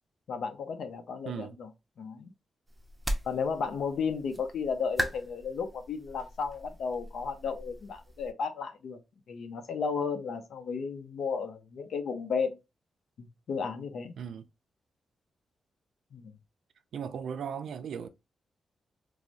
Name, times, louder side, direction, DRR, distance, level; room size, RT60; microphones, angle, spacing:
voice 1, 0.3-1.7 2.0-2.3 3.2-9.0 9.3-12.6 13.2-14.2 16.1-16.4, left 5 dB, 70° left, 0.6 m, -34 dB
voice 2, 1.3-1.6 14.2-14.4 16.9-18.1, right 7 dB, 75° right, 0.4 m, -37 dB
sound 1, 2.7-8.3, equal, 5° right, 0.6 m, -39 dB
4.6 x 2.0 x 2.6 m
wide cardioid pair, 130°, 0 cm